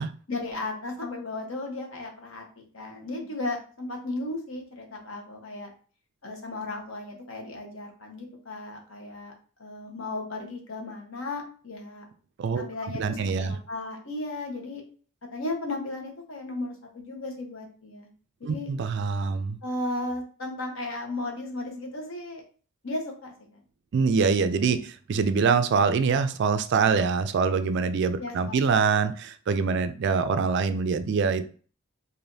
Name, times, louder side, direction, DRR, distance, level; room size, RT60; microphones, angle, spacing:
voice 1, 0.3-5.7 6.2-9.3 9.6-12.0 12.5-14.8 15.2-18.1 18.4-18.7 19.6-22.4 22.8-23.6 28.2-28.6, left 2 dB, 65° left, 2 dB, 1.1 m, -35 dB
voice 2, 12.9-13.5 18.4-19.6 23.9-31.4, right 5 dB, 55° right, 11 dB, 0.3 m, -24 dB
4.8 x 2.6 x 2.6 m, 0.40 s
head